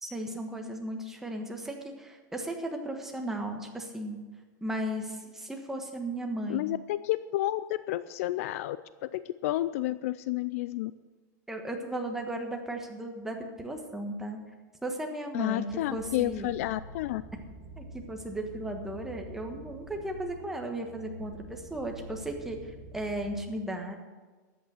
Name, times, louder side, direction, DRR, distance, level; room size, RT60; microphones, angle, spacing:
voice 1, 0.0-4.2 4.6-6.7 11.5-14.4 14.8-16.5 17.8-24.0, right 1 dB, 5° right, 2 dB, 1.3 m, -36 dB
voice 2, 6.5-7.6 7.9-8.8 9.0-10.9 15.3-17.2, left 15 dB, 50° left, 15 dB, 0.4 m, -30 dB
sound 1, 15.7-23.4, right 1 dB, 55° right, 5.1 m, -47 dB
13.5 x 8.8 x 6.5 m, 1.3 s
supercardioid pair, 160°, 10 cm